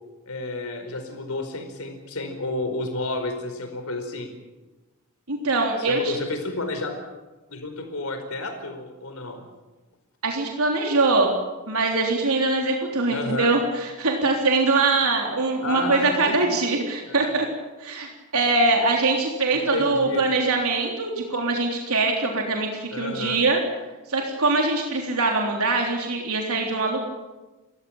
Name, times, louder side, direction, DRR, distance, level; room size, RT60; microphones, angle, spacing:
voice 1, 0.3-4.3 5.8-7.0 7.5-9.4 13.1-13.5 15.6-16.6 17.1-17.3 19.5-20.2 22.9-23.4, left 2 dB, 75° left, 5 dB, 4.8 m, -31 dB
voice 2, 5.3-6.1 10.2-11.4 11.7-17.5 17.8-23.6 24.1-27.0, right 3 dB, 85° right, 1 dB, 3.5 m, -23 dB
30.0 x 15.0 x 8.9 m, 1.2 s
head